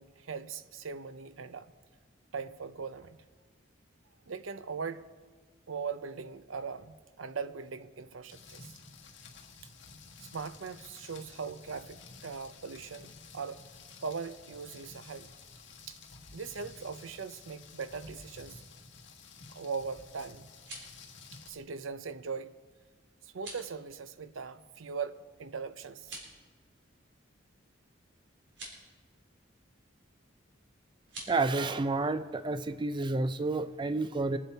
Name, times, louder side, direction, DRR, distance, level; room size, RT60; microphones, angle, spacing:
voice 1, 0.0-1.7 2.3-3.2 4.3-5.1 5.7-8.7 10.2-13.6 14.0-15.3 15.9-16.0 16.3-18.6 19.5-20.5 21.3-22.5 23.2-26.2, right 5 dB, 90° right, 0.6 m, -40 dB
Rain, 8.3-21.5, left 4 dB, 65° left, 1.4 m, -52 dB
sound 1, 20.4-21.0 23.3-23.7 25.9-26.4 28.4-28.8 31.0-31.3, right 2 dB, 65° right, 3.6 m, -46 dB
voice 2, 31.3-34.4, right 3 dB, 25° right, 0.4 m, -30 dB
23.0 x 8.2 x 4.5 m
head